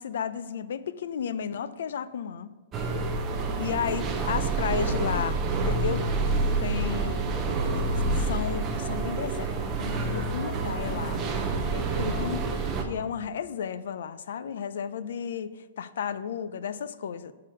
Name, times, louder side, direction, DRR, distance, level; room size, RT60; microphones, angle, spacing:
voice 1, 0.0-2.5 3.6-6.1 6.6-7.3 8.2-11.2 11.7-17.3, left 7 dB, 60° left, 15 dB, 0.4 m, -33 dB
sound 1, 2.7-12.8, right 3 dB, 15° right, 0.6 m, -28 dB
6.6 x 5.7 x 6.2 m, 1.3 s
hypercardioid pair, 175°, 0 cm